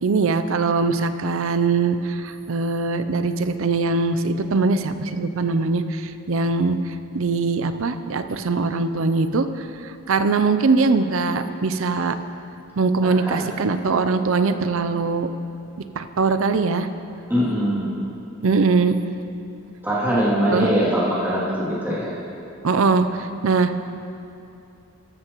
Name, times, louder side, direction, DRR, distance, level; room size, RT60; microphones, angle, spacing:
voice 1, 0.0-6.8 7.1-12.2 12.8-15.3 16.0-16.9 18.4-19.0 20.5-20.7 22.6-23.7, right 4 dB, 65° right, 10 dB, 0.5 m, -21 dB
voice 2, 13.1-13.5 17.3-17.9 19.8-22.1, equal, 10° right, -9 dB, 2.7 m, -22 dB
13.5 x 13.0 x 3.1 m, 2.8 s
head